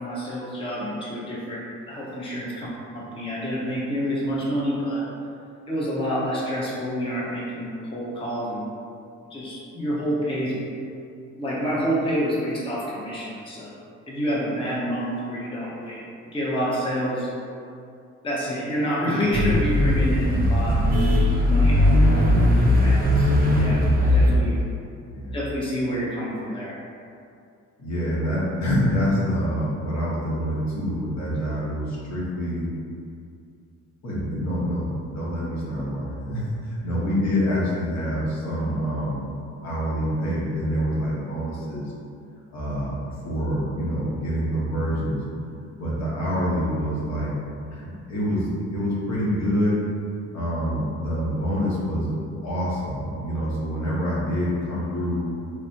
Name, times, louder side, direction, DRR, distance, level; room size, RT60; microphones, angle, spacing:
voice 1, 0.0-5.1 5.7-8.7 9.3-10.6 11.4-16.0 16.3-17.3 18.2-20.8 21.4-22.1 22.6-24.6 25.3-26.8, equal, 15° left, -6 dB, 0.7 m, -28 dB
sound 1, 19.3-24.4, left 1 dB, 30° right, 0.6 m, -19 dB
voice 2, 27.8-32.7 34.0-39.3 39.6-41.9 42.5-43.0 43.2-45.2 45.8-47.3 47.7-49.8 50.3-52.1 52.4-55.3, equal, 60° left, -7 dB, 1.2 m, -26 dB
3.2 x 3.2 x 2.7 m, 2.5 s
cardioid pair, 90°, 30 cm